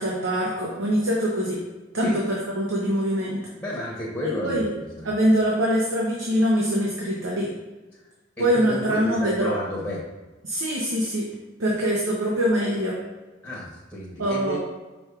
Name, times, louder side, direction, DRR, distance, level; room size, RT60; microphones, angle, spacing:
voice 1, 0.0-1.6 1.9-3.4 4.2-4.7 5.0-7.5 8.4-9.5 10.4-11.3 11.6-13.0 14.2-14.6, equal, 80° right, -3 dB, 0.7 m, -23 dB
voice 2, 3.6-4.7 5.0-5.1 7.9-8.0 8.4-10.0 13.4-14.6, equal, 5° left, -5 dB, 0.9 m, -31 dB
5.2 x 4.3 x 2.3 m, 1.2 s
head